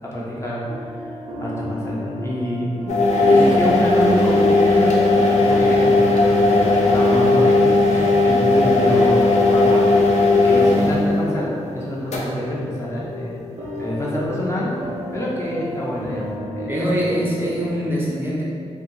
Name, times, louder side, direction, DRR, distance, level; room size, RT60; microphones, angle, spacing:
voice 1, 0.0-9.9 10.4-13.5 13.8-14.7 15.1-16.7, equal, 25° left, -6 dB, 0.6 m, -27 dB
sound 1, 0.6-17.7, left 2 dB, 85° right, 0.5 m, -33 dB
sound 2, 2.9-11.2 12.1-12.2, left 2 dB, 70° left, 0.4 m, -16 dB
voice 2, 10.5-10.9 16.7-18.4, equal, 20° right, -6 dB, 0.4 m, -24 dB
2.3 x 2.1 x 2.8 m, 2.3 s
cardioid pair, 60°, 12 cm